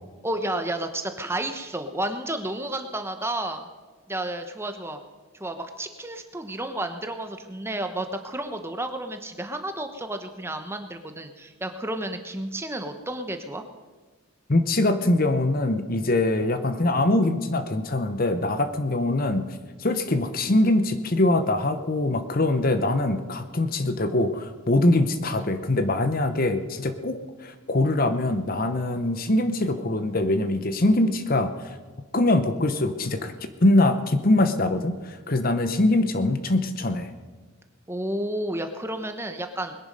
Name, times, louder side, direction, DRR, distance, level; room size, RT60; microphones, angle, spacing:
voice 1, 0.2-3.7 4.1-5.0 5.3-13.6 37.9-39.8, right 1 dB, 10° right, 7 dB, 1.0 m, -31 dB
voice 2, 14.5-19.5 19.8-31.8 32.1-33.3 33.6-37.1, left 2 dB, 40° left, 9 dB, 0.9 m, -23 dB
21.0 x 10.5 x 5.3 m, 1.3 s
head